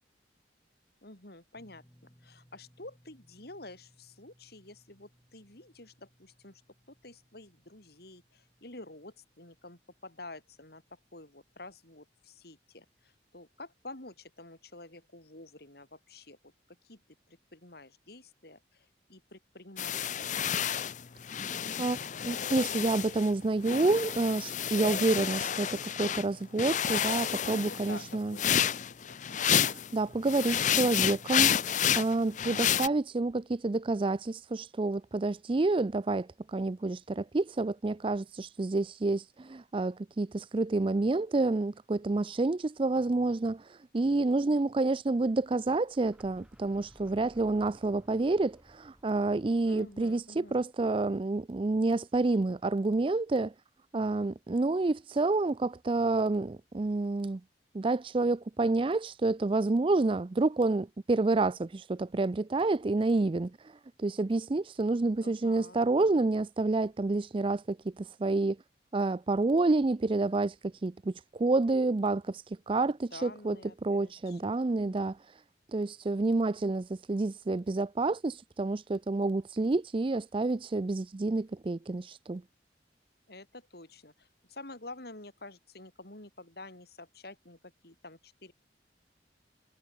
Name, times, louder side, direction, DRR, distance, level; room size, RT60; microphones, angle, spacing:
voice 1, 1.0-1.8 2.2-6.6 6.9-16.5 16.8-17.0 17.3-20.4 27.6-28.0 28.3-28.6 29.0-29.5 49.6-50.6 65.2-65.9 73.1-75.0 83.3-88.5, left 2 dB, 60° left, 6.4 m, -49 dB
sound 1, 1.5-13.8 14.0-14.3 16.0-16.1, equal, 15° left, 7.5 m, -67 dB
sound 2, 19.8-23.3 23.6-26.2 26.6-29.9 30.3-32.9, left 9 dB, 45° left, 0.6 m, -30 dB
voice 2, 22.2-28.4 29.6-53.5 53.9-57.4 57.7-68.6 68.9-75.4 75.7-82.4, right 2 dB, 30° right, 0.4 m, -29 dB
sound 3, 45.8-51.6, equal, 5° right, 4.9 m, -60 dB
head